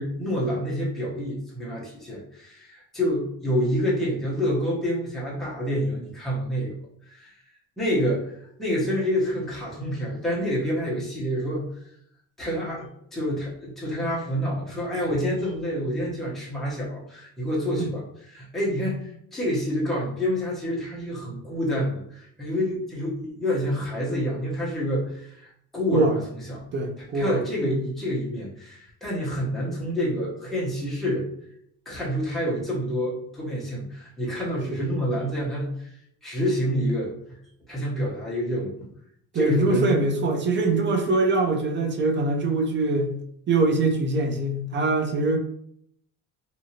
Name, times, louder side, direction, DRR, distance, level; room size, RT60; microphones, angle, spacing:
voice 1, 0.0-6.7 7.1-7.4 7.8-8.3 8.6-11.7 12.4-18.0 18.3-26.6 27.1-31.3 31.9-35.9 36.2-37.4 37.7-38.9 39.3-39.9, equal, ahead, -6 dB, 0.9 m, -28 dB
voice 2, 26.7-27.3 27.6-27.8 39.3-43.1 43.5-45.4, right 3 dB, 30° right, 4 dB, 0.5 m, -23 dB
2.7 x 2.7 x 2.8 m, 0.70 s
cardioid pair, 110°, 36 cm